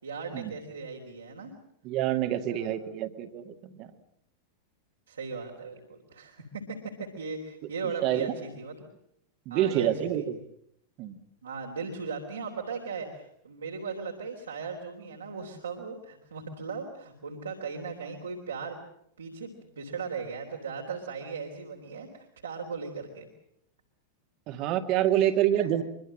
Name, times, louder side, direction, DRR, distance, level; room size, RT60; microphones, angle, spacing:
voice 1, 0.0-1.5 2.5-2.7 5.1-8.8 9.5-9.9 10.2-10.3 11.4-18.8 19.2-19.5 19.8-23.3 25.1-25.8, right 5 dB, 70° right, 0 dB, 3.6 m, -38 dB
voice 2, 1.8-3.9 8.0-8.3 9.5-10.4 11.0-11.2 24.5-25.8, right 12 dB, 40° right, 6 dB, 2.3 m, -27 dB
24.5 x 24.0 x 7.7 m, 0.73 s
figure-of-eight pair, 90°, 0 cm